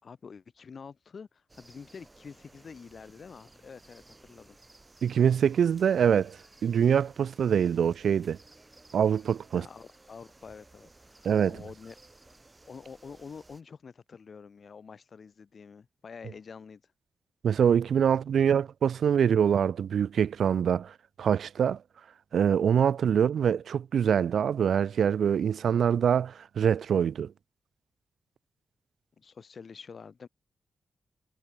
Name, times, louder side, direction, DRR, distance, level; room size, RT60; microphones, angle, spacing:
voice 1, 0.0-4.6 9.5-11.9 12.7-16.8 29.2-30.3, left 5 dB, 60° left, 4.5 m, -47 dB
sound 1, 1.5-13.6, right 2 dB, 30° right, 6.1 m, -57 dB
voice 2, 5.0-6.4 6.6-8.4 8.9-9.7 11.2-11.6 17.4-21.8 22.3-27.3, right 8 dB, 75° right, 0.5 m, -24 dB
supercardioid pair, 40°, 0 cm